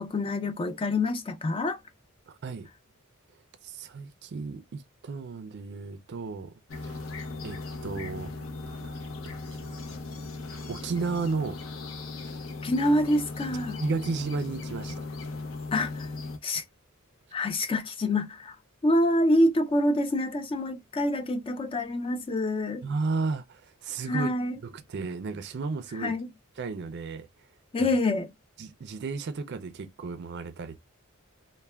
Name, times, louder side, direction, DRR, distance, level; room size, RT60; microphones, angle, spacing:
voice 1, 0.0-1.8 12.6-13.8 15.7-16.1 16.4-16.6 17.3-18.6 18.8-22.9 24.1-24.5 26.0-26.3 27.7-28.3, left 1 dB, 25° left, 0.3 m, -26 dB
voice 2, 2.3-2.7 3.6-7.0 7.4-8.3 8.6-9.9 10.7-11.6 13.5-15.0 22.8-24.3 24.6-26.1 26.6-27.3 28.6-30.8, right 4 dB, 55° right, 0.4 m, -34 dB
sound 1, 6.7-16.4, left 3 dB, 65° left, 0.7 m, -38 dB
3.2 x 2.1 x 2.2 m
head